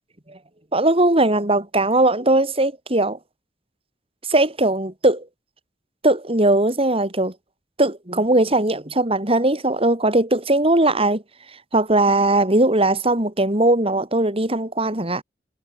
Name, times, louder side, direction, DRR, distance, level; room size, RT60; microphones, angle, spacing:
voice 1, 0.7-3.2 4.3-5.3 6.0-7.3 7.8-11.2 11.7-15.2, right 2 dB, 30° right, 4.2 m, -19 dB
head